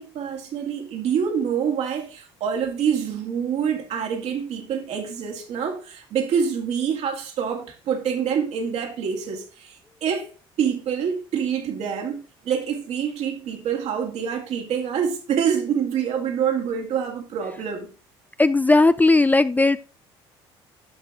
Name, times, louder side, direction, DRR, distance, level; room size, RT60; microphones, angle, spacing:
voice 1, 0.0-10.3 10.6-17.9, right 7 dB, 60° right, 2.2 m, -26 dB
voice 2, 18.4-19.8, left 2 dB, 15° left, 0.4 m, -17 dB
13.0 x 4.7 x 3.7 m
hypercardioid pair, 65°, 12 cm